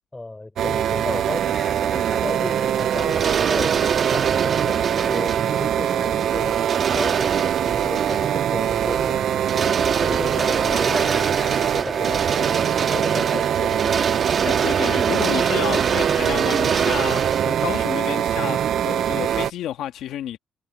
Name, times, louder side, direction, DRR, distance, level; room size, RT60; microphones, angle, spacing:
voice 1, 0.1-6.6 6.9-11.3 11.7-14.0, left 2 dB, 15° left, 5.4 m, -34 dB
sound 1, 0.6-19.5, right 10 dB, 70° right, 0.4 m, -23 dB
sound 2, 0.9-19.0, equal, ahead, 4.8 m, -41 dB
sound 3, 2.8-18.3, right 6 dB, 45° right, 2.0 m, -26 dB
voice 2, 14.4-20.4, left 12 dB, 80° left, 1.7 m, -30 dB
cardioid pair, 90°, 0 cm